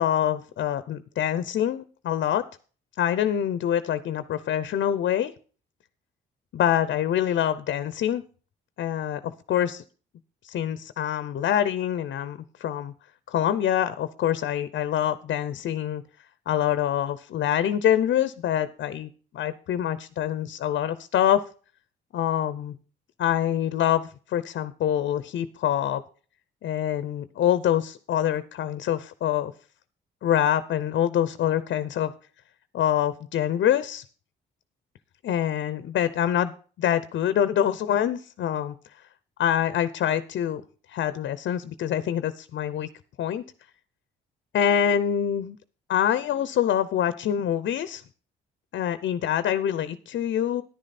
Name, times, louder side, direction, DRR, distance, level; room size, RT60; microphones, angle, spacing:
voice 1, 0.0-2.4 3.0-5.3 6.5-8.2 8.8-9.8 10.4-12.9 13.3-16.0 16.5-21.4 22.1-22.8 23.2-26.0 26.6-29.5 30.2-32.1 32.7-34.0 35.2-38.7 39.4-40.6 40.9-42.9 43.2-43.4 44.5-45.6 45.9-48.0 48.7-50.6, left 10 dB, 65° left, 14 dB, 0.7 m, -25 dB
10.5 x 10.0 x 4.2 m, 0.39 s
cardioid pair, 90°, 20 cm